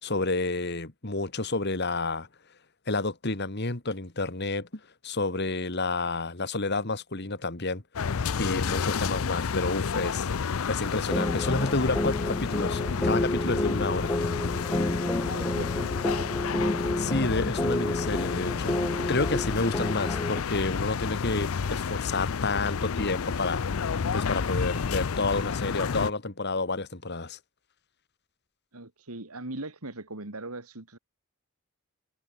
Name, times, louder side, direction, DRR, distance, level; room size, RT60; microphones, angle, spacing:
voice 1, 0.0-2.3 2.9-4.7 5.0-7.8 8.4-10.3 10.7-14.1 17.0-23.6 24.1-27.4, left 3 dB, 50° left, 2.3 m, -30 dB
sound 1, 7.9-26.1, left 6 dB, 70° left, 0.5 m, -30 dB
sound 2, 11.1-20.4, left 1 dB, 15° left, 0.9 m, -30 dB
voice 2, 15.2-15.9 16.2-16.3 28.7-31.0, right 2 dB, 90° right, 3.2 m, -40 dB
head